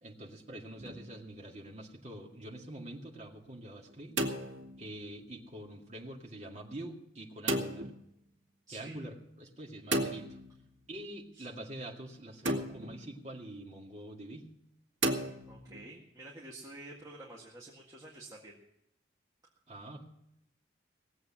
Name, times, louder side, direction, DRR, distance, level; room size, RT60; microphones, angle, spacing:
voice 1, 0.0-4.1 4.8-7.9 8.7-10.4 10.9-14.5 19.7-20.0, right 1 dB, 35° right, -1 dB, 2.2 m, -45 dB
sound 1, 0.8-1.3 3.9-5.1 7.5-8.0 9.9-10.8 12.4-13.1 15.0-15.9, right 1 dB, 85° right, 2.0 m, -34 dB
voice 2, 8.7-9.0 11.3-11.5 15.5-18.5, right 2 dB, 20° right, -4 dB, 1.9 m, -49 dB
18.5 x 8.0 x 7.4 m, 0.79 s
head